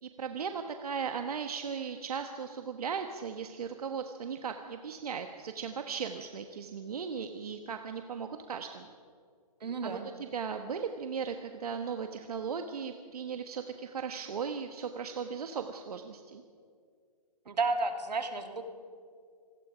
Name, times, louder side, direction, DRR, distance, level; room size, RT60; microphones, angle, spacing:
voice 1, 0.0-8.9 9.8-16.4, right 6 dB, 65° right, 6 dB, 1.4 m, -37 dB
voice 2, 9.6-10.1 17.5-18.6, right 3 dB, 85° right, 6 dB, 2.7 m, -32 dB
26.0 x 19.5 x 5.1 m, 2.1 s
hypercardioid pair, 170°, 21 cm